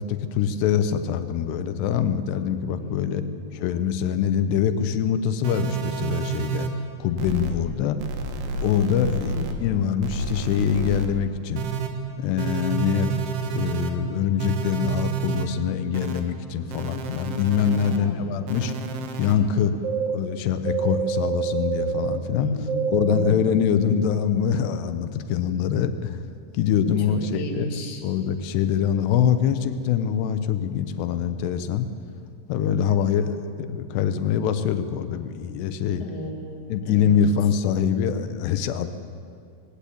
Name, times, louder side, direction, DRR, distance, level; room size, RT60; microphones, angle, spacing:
voice 1, 0.0-3.2 3.5-6.7 7.0-8.0 8.5-9.3 9.6-11.6 12.2-13.2 13.5-18.7 19.2-19.7 20.1-22.5 22.9-26.2 26.5-27.7 28.0-31.9 32.5-36.0 36.7-38.9, left 8 dB, 85° left, 10 dB, 3.0 m, -24 dB
voice 2, 2.7-3.5 9.0-9.5 17.8-18.3 22.3-23.4 27.1-28.0 36.0-37.2, left 1 dB, 30° left, 1 dB, 2.0 m, -34 dB
sound 1, 5.4-6.7 7.2-7.5 8.0-9.5 10.0-11.1 11.6-11.9 12.4-13.9 14.4-15.4 15.9-16.2 16.7-18.0 18.5-19.3 19.8-20.2 20.7-22.2 22.7-23.3, right 5 dB, 75° right, 3.5 m, -28 dB
20.0 x 16.5 x 8.7 m, 2.4 s
omnidirectional pair, 4.8 m